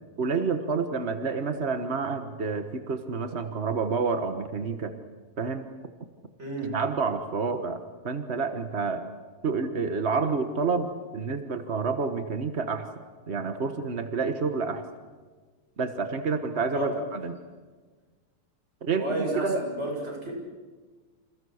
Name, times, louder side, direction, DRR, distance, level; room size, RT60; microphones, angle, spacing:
voice 1, 0.2-4.9 5.4-5.7 6.7-9.0 9.4-12.9 13.3-14.8 15.8-17.4 18.8-19.6, right 4 dB, 50° right, 7 dB, 0.7 m, -29 dB
voice 2, 6.4-6.7 16.7-17.0 19.0-20.4, right 1 dB, 20° right, 0 dB, 7.2 m, -31 dB
29.0 x 28.5 x 6.6 m, 1.4 s
omnidirectional pair, 3.4 m